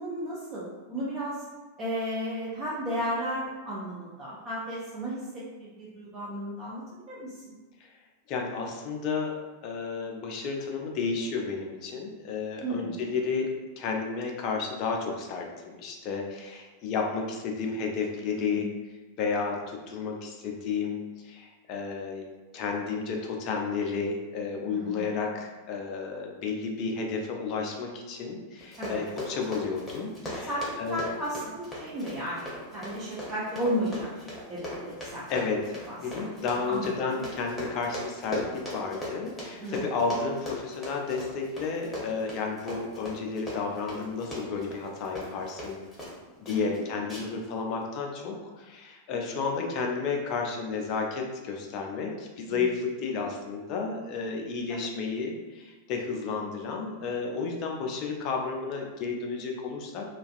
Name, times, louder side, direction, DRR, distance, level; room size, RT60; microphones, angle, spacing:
voice 1, 0.0-1.4 1.8-7.3 12.6-12.9 18.5-18.8 24.7-25.0 28.8-29.0 30.4-30.6 30.9-34.2 34.5-35.2 35.9-36.0 36.7-36.9 39.6-39.8 46.5-46.7 52.5-52.6 54.7-54.8, equal, 30° right, -7 dB, 0.5 m, -34 dB
voice 2, 8.3-18.7 19.2-30.5 30.8-31.0 35.3-35.8 36.0-45.8 46.4-60.1, left 4 dB, 40° left, 1 dB, 0.4 m, -32 dB
Run, 28.6-46.2 46.4-46.8 47.1-47.5 47.8-47.9, equal, 10° left, 0.9 m, -39 dB
2.4 x 2.2 x 2.4 m, 1.3 s
figure-of-eight pair, 90°, 0 cm